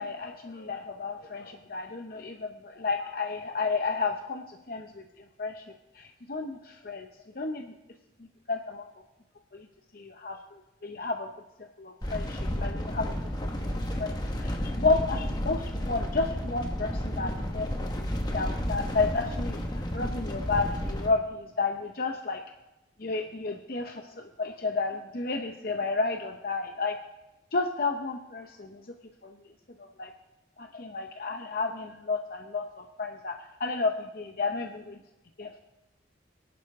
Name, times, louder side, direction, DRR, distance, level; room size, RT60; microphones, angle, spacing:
voice 1, 0.0-5.6 5.9-7.1 7.3-7.7 8.5-8.9 9.5-9.7 9.9-11.3 11.6-13.2 13.7-18.1 18.3-22.4 23.0-27.0 27.5-28.8 29.2-29.4 29.8-30.1 30.6-35.0 35.4-35.6, left 3 dB, 50° left, 4 dB, 0.7 m, -32 dB
sound 1, 12.0-21.1, equal, 20° left, 1.3 m, -32 dB
23.5 x 11.0 x 3.6 m, 1.0 s
head